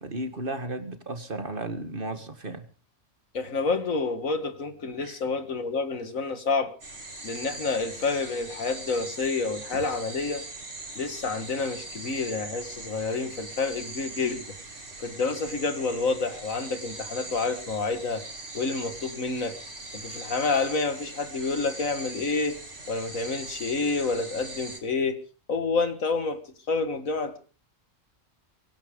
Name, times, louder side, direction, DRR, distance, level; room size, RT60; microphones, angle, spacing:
voice 1, 0.0-2.6 5.0-5.1, right 2 dB, 40° right, 7 dB, 2.0 m, -34 dB
voice 2, 3.3-6.7 7.2-10.5 11.0-14.4 15.0-18.2 18.5-19.6 19.9-22.6 22.9-25.2 25.5-26.4 26.7-27.4, left 4 dB, 85° left, 8 dB, 2.2 m, -28 dB
sound 1, 6.8-24.8, right 2 dB, 60° right, 3.5 m, -41 dB
24.0 x 10.5 x 5.3 m, 0.42 s
omnidirectional pair, 1.4 m